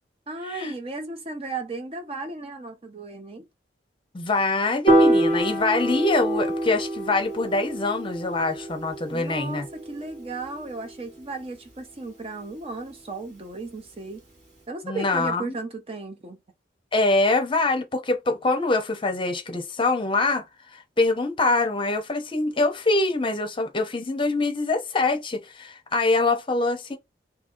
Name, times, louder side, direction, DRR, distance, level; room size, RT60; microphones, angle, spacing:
voice 1, 0.3-3.5 9.1-14.2 14.7-16.4, right 3 dB, 35° right, 0.6 m, -35 dB
voice 2, 4.1-9.7 14.8-15.6 16.9-27.0, left 3 dB, 30° left, 0.7 m, -24 dB
Piano, 4.9-11.2, right 1 dB, 55° right, 1.6 m, -25 dB
2.7 x 2.7 x 3.7 m
head